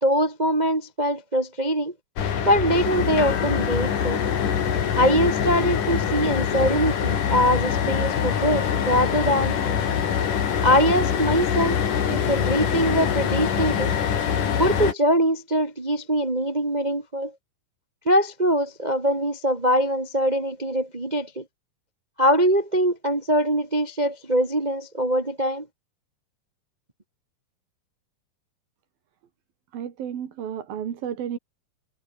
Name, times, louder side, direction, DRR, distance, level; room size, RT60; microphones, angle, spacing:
voice 1, 0.0-1.9 2.4-4.2 5.0-9.8 10.6-11.8 12.1-13.9 14.6-17.3 18.1-21.4 22.2-25.7, equal, 15° right, 1.7 m, -23 dB
sound 1, 2.2-14.9, left 8 dB, 65° left, 4.1 m, -24 dB
voice 2, 29.7-31.4, right 9 dB, 80° right, 4.3 m, -32 dB
omnidirectional pair, 4.1 m